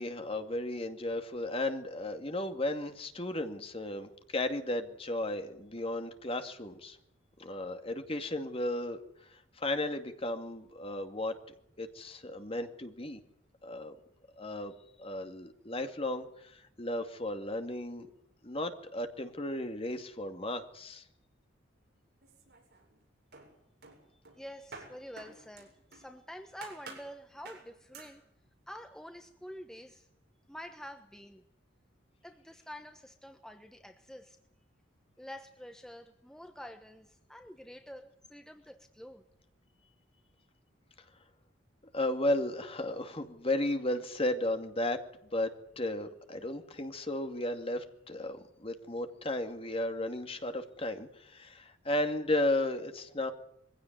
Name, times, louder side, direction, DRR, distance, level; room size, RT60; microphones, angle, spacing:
voice 1, 0.0-7.0 7.4-11.3 11.8-13.2 13.6-14.0 14.4-18.1 18.4-21.0 41.9-45.0 45.3-45.5 45.8-53.3, left 1 dB, 30° left, 7 dB, 2.4 m, -34 dB
sound 1, 22.2-23.0 23.3-26.1 26.6-27.1 27.4-27.7 27.9-28.2, right 4 dB, 55° right, 7.7 m, -50 dB
voice 2, 24.1-28.2 28.7-30.1 30.5-31.4 32.2-34.4 35.2-39.2, equal, 5° left, 6 dB, 1.2 m, -48 dB
22.5 x 16.5 x 9.4 m, 0.77 s
head